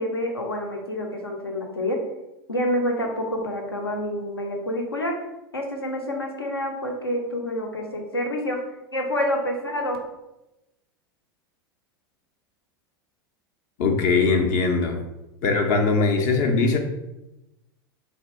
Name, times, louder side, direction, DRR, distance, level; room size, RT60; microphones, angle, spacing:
voice 1, 0.0-2.0 2.5-5.1 5.5-8.6 8.9-10.0, left 1 dB, 80° left, 1 dB, 0.8 m, -27 dB
voice 2, 13.8-15.0 15.4-16.8, left 4 dB, 50° left, 4 dB, 0.6 m, -21 dB
3.5 x 2.7 x 4.2 m, 0.95 s
figure-of-eight pair, 85°, 12 cm